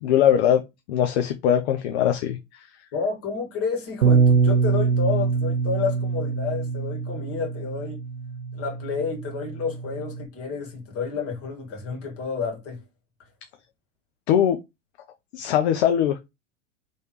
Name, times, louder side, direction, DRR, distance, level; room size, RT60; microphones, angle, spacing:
voice 1, 0.0-0.6 0.9-2.4 14.3-14.6 15.3-16.2, left 10 dB, 55° left, 0.7 m, -20 dB
voice 2, 2.9-8.0 8.5-12.8, left 5 dB, 35° left, 2.0 m, -30 dB
Bass guitar, 4.0-10.3, right 5 dB, 90° right, 0.6 m, -24 dB
4.4 x 3.2 x 3.0 m
figure-of-eight pair, 90°, 38 cm